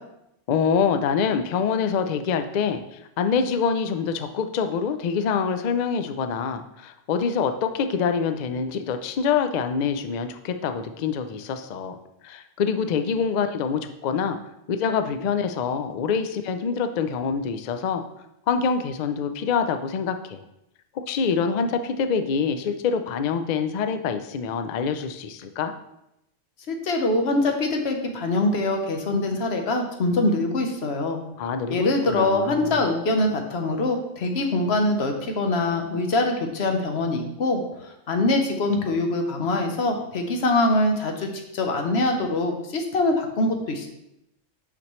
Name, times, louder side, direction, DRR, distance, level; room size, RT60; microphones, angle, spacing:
voice 1, 0.5-12.0 12.2-14.4 14.7-18.0 18.5-20.4 20.9-25.7 31.4-32.8, left 6 dB, 80° left, 8 dB, 0.4 m, -25 dB
voice 2, 26.7-31.2 31.7-37.6 38.1-41.3 41.5-43.9, left 2 dB, 60° left, 4 dB, 1.1 m, -23 dB
6.0 x 5.8 x 3.1 m, 0.84 s
omnidirectional pair, 1.3 m